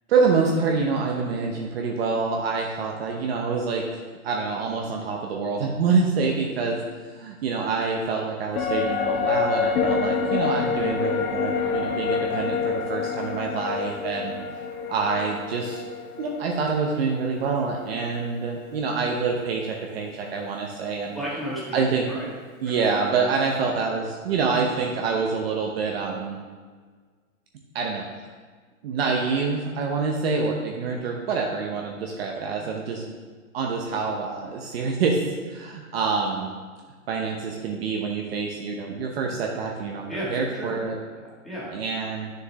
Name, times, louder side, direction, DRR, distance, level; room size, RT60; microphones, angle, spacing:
voice 1, 0.1-6.8 7.1-14.3 14.9-15.8 16.2-21.1 21.7-22.1 22.6-26.4 27.7-28.0 28.8-33.1 33.5-35.2 35.5-36.5 37.1-41.0 41.7-42.3, right 4 dB, 45° right, 0 dB, 1.0 m, -26 dB
sound 1, 8.5-18.1 18.4-18.5, left 5 dB, 75° left, 1.1 m, -27 dB
voice 2, 21.1-21.8 22.1-22.3 40.0-40.7 41.2-41.7, equal, ahead, -8 dB, 1.9 m, -33 dB
9.3 x 6.7 x 3.2 m, 1.5 s
hypercardioid pair, 145°, 42 cm